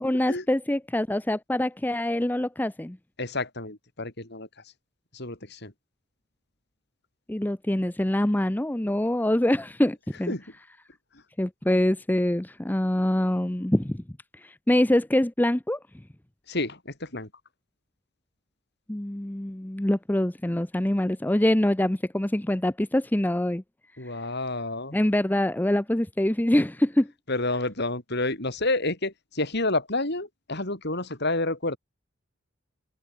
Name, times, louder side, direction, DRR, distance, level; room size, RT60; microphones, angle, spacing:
voice 1, 0.0-3.0 7.3-10.3 11.4-14.0 14.4-15.8 18.9-23.6 24.9-27.1, left 1 dB, 10° left, 0.6 m, -24 dB
voice 2, 3.2-4.5 5.1-5.7 10.3-10.4 16.5-17.3 24.0-25.0 27.3-31.8, left 2 dB, 55° left, 5.7 m, -29 dB
head